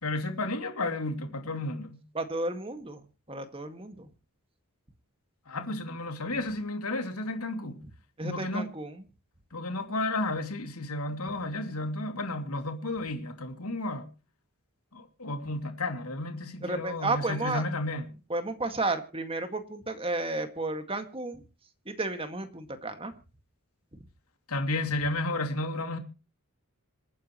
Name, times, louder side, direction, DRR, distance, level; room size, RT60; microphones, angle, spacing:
voice 1, 0.0-2.0 5.5-7.8 8.2-8.7 9.5-14.1 14.9-18.1 24.5-26.0, left 2 dB, 75° left, 2.7 m, -32 dB
voice 2, 2.1-4.1 8.2-9.0 16.6-17.6 18.3-21.4 21.9-23.1 23.9-24.0, right 2 dB, 25° right, 2.0 m, -33 dB
26.5 x 9.7 x 3.1 m
head